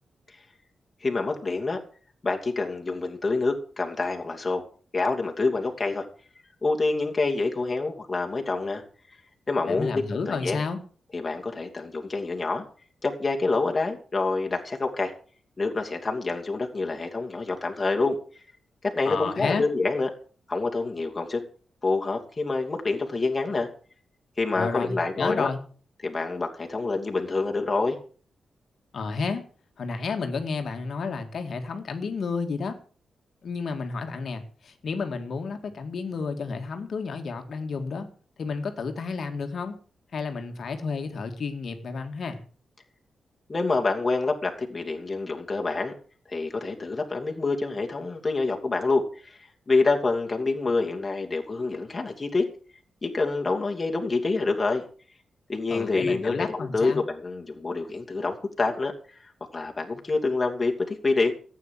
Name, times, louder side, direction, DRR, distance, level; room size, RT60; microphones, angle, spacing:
voice 1, 1.0-1.8 2.2-4.7 4.9-6.0 6.6-8.8 9.5-10.6 11.1-12.6 13.0-15.1 15.6-18.2 18.8-20.1 20.5-21.4 21.8-23.7 24.4-25.5 26.0-28.0 43.5-45.9 46.3-49.4 49.7-52.4 53.0-54.8 55.5-58.9 59.5-61.3, left 3 dB, 25° left, 2 dB, 2.8 m, -27 dB
voice 2, 9.7-10.8 19.0-19.6 24.5-25.6 28.9-29.4 29.8-32.8 33.4-38.1 38.4-39.8 40.1-42.4 55.7-57.0, left 4 dB, 55° left, 6 dB, 2.1 m, -31 dB
14.5 x 9.1 x 7.6 m, 0.42 s
wide cardioid pair, 150°, 0 cm